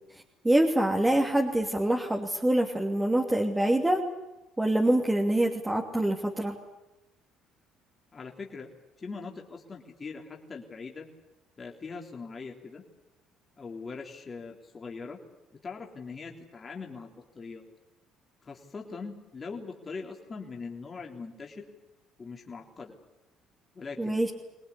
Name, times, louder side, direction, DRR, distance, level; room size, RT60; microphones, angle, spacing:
voice 1, 0.4-4.0 4.6-6.5 24.0-24.3, right 1 dB, 10° right, 1 dB, 2.9 m, -25 dB
voice 2, 8.1-8.7 9.0-11.1 11.6-12.8 13.6-15.2 15.6-17.6 18.4-21.7 22.2-22.9 23.8-24.2, left 4 dB, 30° left, 1 dB, 3.5 m, -41 dB
24.5 x 19.0 x 9.8 m, 1.0 s
supercardioid pair, 80°, 0 cm